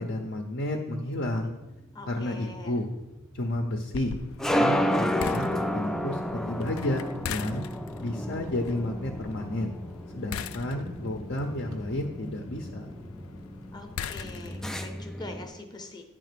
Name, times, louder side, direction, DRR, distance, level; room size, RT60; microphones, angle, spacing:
voice 1, 0.0-1.5 2.1-2.9 3.3-4.1 4.4-6.2 6.5-7.6 8.0-9.7 10.1-12.9, left 1 dB, 55° left, 3 dB, 0.7 m, -31 dB
sound 1, 1.5-15.5, equal, ahead, 0.3 m, -32 dB
voice 2, 1.9-2.8 13.7-16.0, left 2 dB, 20° left, 5 dB, 0.8 m, -43 dB
sound 2, 3.9-14.8, left 8 dB, 85° left, 0.4 m, -42 dB
9.5 x 3.6 x 6.7 m, 1.0 s
head